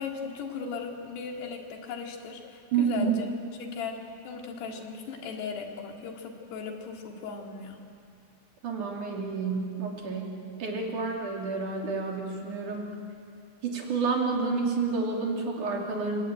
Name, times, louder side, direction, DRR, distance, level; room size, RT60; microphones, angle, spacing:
voice 1, 0.0-3.3 3.6-7.8, left 5 dB, 70° left, 2 dB, 4.1 m, -37 dB
voice 2, 2.7-3.1 8.6-12.9 13.6-16.2, right 4 dB, 50° right, 0 dB, 4.2 m, -29 dB
29.5 x 17.0 x 9.2 m, 2.4 s
omnidirectional pair, 5.0 m